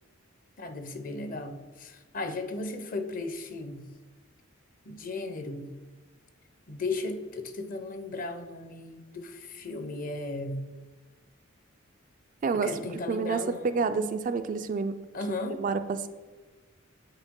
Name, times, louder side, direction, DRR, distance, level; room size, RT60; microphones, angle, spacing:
voice 1, 0.6-3.9 4.9-5.7 6.7-10.7 12.5-14.1 15.1-15.6, left 2 dB, 40° left, 7 dB, 0.7 m, -36 dB
voice 2, 12.4-15.0 15.6-16.1, right 5 dB, 40° right, 9 dB, 0.3 m, -29 dB
8.9 x 4.5 x 3.7 m, 1.3 s
head